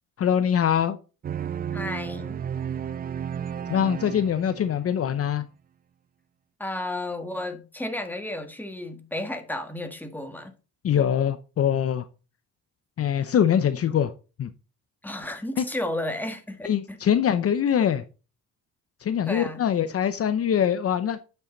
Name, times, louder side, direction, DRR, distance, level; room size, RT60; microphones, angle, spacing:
voice 1, 0.2-1.0 3.7-5.4 10.8-12.1 13.0-14.1 14.4-14.5 15.6-15.7 16.6-18.0 19.0-21.2, left 9 dB, 50° left, 0.7 m, -23 dB
sound 1, 1.2-5.0, right 8 dB, 30° right, 0.4 m, -33 dB
voice 2, 1.7-2.4 6.6-10.5 15.0-17.0 19.2-19.6, left 1 dB, 5° left, 1.6 m, -33 dB
8.8 x 5.7 x 3.9 m
cardioid pair, 90°, 30 cm